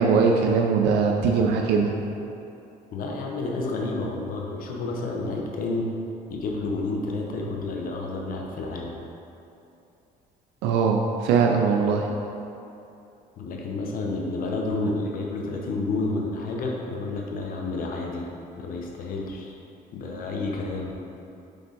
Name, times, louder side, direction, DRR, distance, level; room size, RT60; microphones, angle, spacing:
voice 1, 0.0-1.9 10.6-12.1, right 5 dB, 90° right, 1 dB, 0.5 m, -21 dB
voice 2, 2.9-5.9 6.3-8.9 13.4-18.3 18.6-19.5 19.9-20.9, left 2 dB, 55° left, 0 dB, 0.8 m, -30 dB
6.7 x 3.8 x 4.0 m, 2.8 s
cardioid pair, 110°, 17 cm